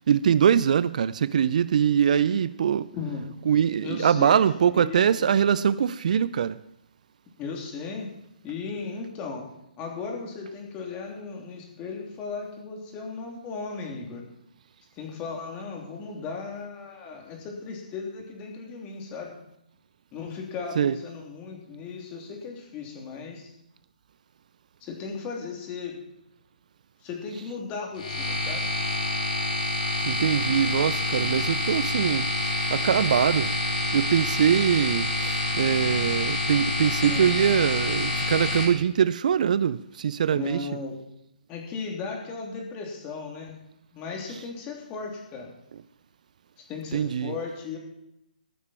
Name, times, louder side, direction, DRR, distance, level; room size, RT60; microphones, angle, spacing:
voice 1, 0.0-2.9 3.5-6.5 20.8-21.0 30.1-32.3 32.7-33.5 33.9-40.7 46.9-47.3, right 8 dB, 55° right, 0.4 m, -23 dB
voice 2, 2.9-3.3 3.8-4.4 4.7-5.3 7.4-8.1 8.4-9.5 9.8-14.2 15.0-19.3 20.1-23.5 24.8-26.0 27.0-28.7 37.0-37.3 40.3-41.0 41.5-43.6 43.9-45.5 46.7-47.8, left 4 dB, 25° left, 3.2 m, -36 dB
sound 1, 28.0-38.6, left 2 dB, 50° left, 4.6 m, -27 dB
14.5 x 11.5 x 4.5 m
figure-of-eight pair, 140°, 5 cm